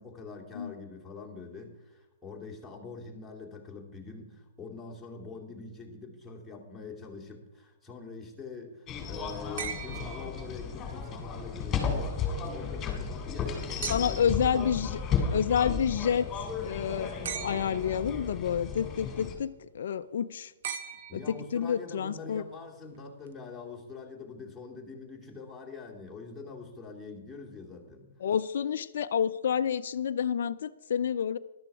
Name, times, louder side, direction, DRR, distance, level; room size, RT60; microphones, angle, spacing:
voice 1, 0.0-14.9 15.2-15.4 21.1-28.1, left 4 dB, 5° left, -3 dB, 2.7 m, -44 dB
sound 1, 8.9-19.3, left 6 dB, 20° left, 3.1 m, -34 dB
sound 2, 9.6-11.0 13.8-14.4 17.2-18.0 20.6-21.7 23.3-23.4, right 8 dB, 60° right, 1.2 m, -39 dB
voice 2, 13.9-15.0 15.3-20.5 21.1-22.4 28.2-31.4, left 8 dB, 60° left, 9 dB, 0.5 m, -29 dB
13.5 x 12.0 x 4.8 m, 1.1 s
hypercardioid pair, 130°, 0 cm